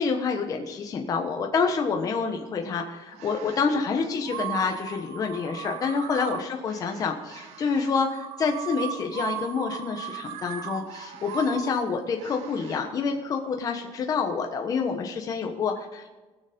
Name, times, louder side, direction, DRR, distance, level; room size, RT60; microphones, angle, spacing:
voice 1, 0.0-16.1, left 5 dB, 35° left, 3 dB, 1.1 m, -27 dB
sound 1, 3.1-3.7 4.2-12.8, right 10 dB, 85° right, 1.1 m, -37 dB
19.5 x 6.9 x 5.3 m, 1.2 s
cardioid pair, 140°, 11 cm